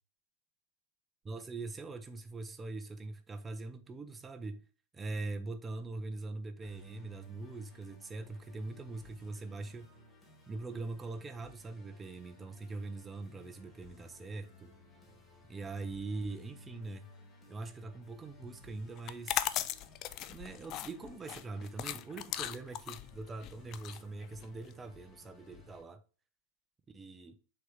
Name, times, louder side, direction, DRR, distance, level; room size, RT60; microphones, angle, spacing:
voice 1, 1.2-4.6 4.9-9.9 10.5-14.7 15.5-17.1 17.5-19.6 20.3-26.0 26.9-27.4, right 3 dB, 15° right, 0.8 m, -42 dB
Musical instrument, 6.6-25.8, left 2 dB, 20° left, 1.7 m, -58 dB
sound 1, 19.0-24.7, left 12 dB, 35° left, 0.4 m, -38 dB
6.3 x 4.5 x 3.4 m
figure-of-eight pair, 90°, 0 cm